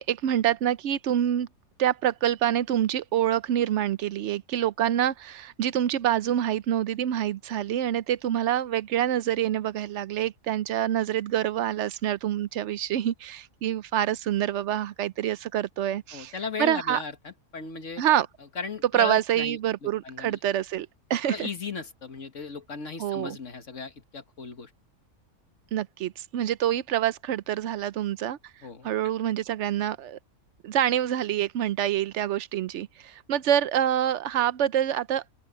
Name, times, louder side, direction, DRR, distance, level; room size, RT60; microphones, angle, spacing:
voice 1, 0.0-1.5 1.8-16.3 16.6-17.0 18.0-18.3 18.9-21.5 23.0-23.4 25.7-28.4 28.8-30.2 30.6-35.2, right 11 dB, 65° right, 0.8 m, -26 dB
voice 2, 16.1-18.0 18.6-20.4 21.3-24.7 28.6-28.9, left 5 dB, 55° left, 1.9 m, -36 dB
open air
omnidirectional pair, 1.6 m